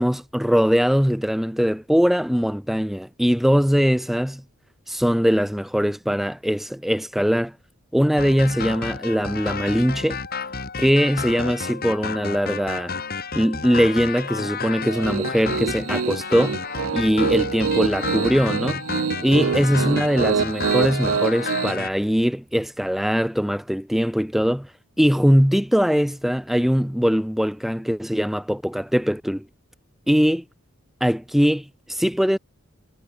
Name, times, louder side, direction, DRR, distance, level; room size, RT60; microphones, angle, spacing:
voice 1, 0.0-4.4 4.9-7.5 7.9-10.2 10.8-12.9 13.3-16.6 16.9-18.8 19.2-24.7 25.0-29.5 30.1-30.4 31.0-32.4, equal, ahead, 0.5 m, -21 dB
sound 1, 8.2-21.9, left 4 dB, 45° left, 3.8 m, -31 dB
Piano, 14.9-21.7, right 6 dB, 70° right, 0.5 m, -26 dB
head